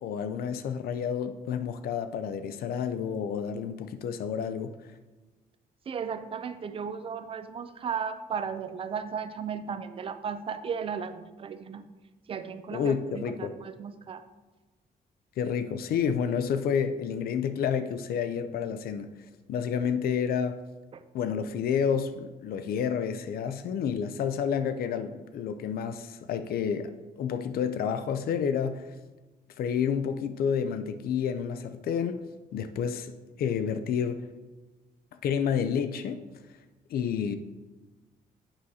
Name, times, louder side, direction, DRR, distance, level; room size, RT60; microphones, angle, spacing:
voice 1, 0.0-4.7 12.7-13.5 15.4-19.1 19.5-20.6 21.1-28.9 29.6-34.3 35.2-36.2 36.9-37.4, left 7 dB, 70° left, 0.4 m, -30 dB
voice 2, 5.9-11.9 12.3-14.2 20.9-21.0, right 6 dB, 35° right, 0.4 m, -35 dB
8.7 x 6.2 x 2.8 m
cardioid pair, 150°, 16 cm